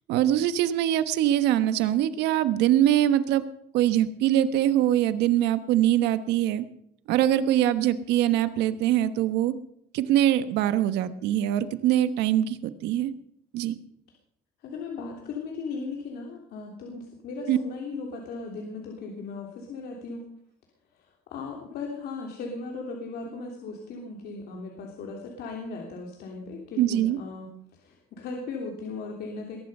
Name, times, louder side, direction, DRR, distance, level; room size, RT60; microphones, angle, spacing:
voice 1, 0.1-3.4 3.7-6.6 7.1-9.5 9.9-13.1 13.5-13.8 17.5-17.6 26.8-27.2, right 12 dB, 90° right, 12 dB, 1.2 m, -23 dB
voice 2, 14.6-20.3 20.9-29.6, left 4 dB, 70° left, 1 dB, 3.2 m, -37 dB
21.5 x 11.5 x 5.5 m, 0.73 s
cardioid pair, 110°, 17 cm